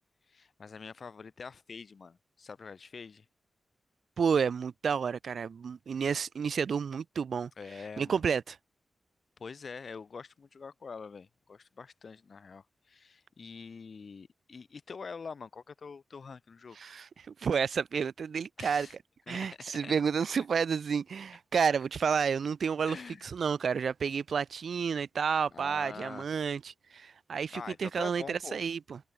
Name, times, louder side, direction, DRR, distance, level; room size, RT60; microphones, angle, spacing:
voice 1, 0.3-3.3 7.6-8.2 9.4-16.8 18.6-19.0 19.3-19.5 19.8-19.9 22.8-23.3 25.5-26.3 27.5-28.6, left 5 dB, 55° left, 2.5 m, -45 dB
voice 2, 4.2-7.5 8.0-8.5 16.8-18.9 19.3-23.0 23.2-29.0, right 6 dB, 70° right, 0.7 m, -30 dB
wide cardioid pair, 130°, 0 cm